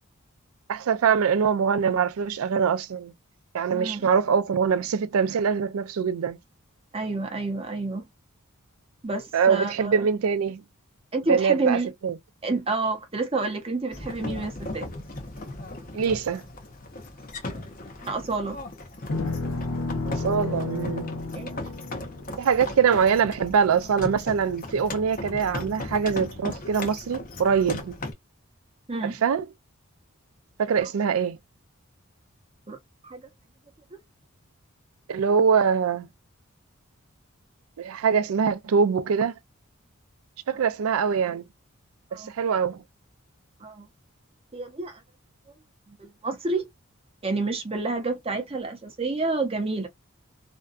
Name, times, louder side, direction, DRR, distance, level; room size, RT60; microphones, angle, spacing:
voice 1, 0.7-3.1 3.5-6.4 9.3-10.6 11.3-12.1 15.9-16.4 20.2-21.1 22.4-28.0 29.0-29.4 30.6-31.4 35.1-36.1 37.8-39.3 40.5-41.4 42.1-42.8, right 6 dB, 75° right, 0.4 m, -23 dB
voice 2, 3.7-4.1 6.9-8.1 9.0-10.1 11.1-11.9 12.4-14.9 17.4-17.6 18.0-18.6 21.3-21.6 22.3-22.4 28.9-29.1 30.7-30.9 32.7-32.8 33.0-33.2 33.9-34.0 42.1-42.3 43.6-43.9 44.5-45.0 45.9-46.7 47.2-49.9, right 3 dB, 25° right, 0.6 m, -29 dB
sound 1, 13.9-28.1, left 2 dB, 40° left, 0.6 m, -37 dB
sound 2, 19.1-23.5, left 2 dB, 90° left, 0.8 m, -32 dB
2.5 x 2.2 x 2.3 m
head